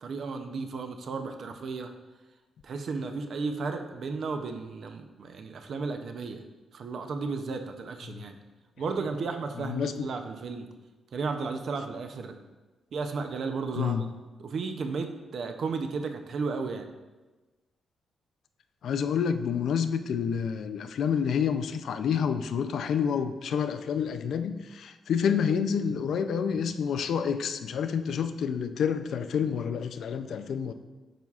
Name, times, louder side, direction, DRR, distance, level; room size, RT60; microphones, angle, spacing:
voice 1, 0.0-1.9 2.6-6.4 6.7-8.4 8.8-10.7 11.1-12.4 12.9-14.0 14.4-16.9, right 4 dB, 50° right, 6 dB, 0.5 m, -34 dB
voice 2, 9.6-10.1 13.8-14.1 18.8-30.7, left 7 dB, 60° left, 10 dB, 0.4 m, -28 dB
9.0 x 5.5 x 2.4 m, 1.2 s
wide cardioid pair, 170°, 0 cm